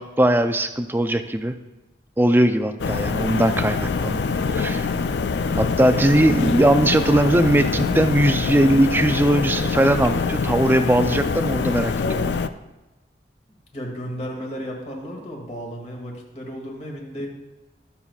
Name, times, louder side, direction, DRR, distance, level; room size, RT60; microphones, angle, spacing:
voice 1, 0.0-1.5 2.2-4.2 4.5-4.9 5.6-12.4, right 1 dB, 10° right, 8 dB, 0.4 m, -19 dB
sound 1, 2.8-12.5, left 4 dB, 70° left, 0.4 m, -24 dB
voice 2, 5.7-6.3 13.7-17.3, equal, 35° left, 0 dB, 2.1 m, -33 dB
19.5 x 6.9 x 2.4 m, 1.1 s
head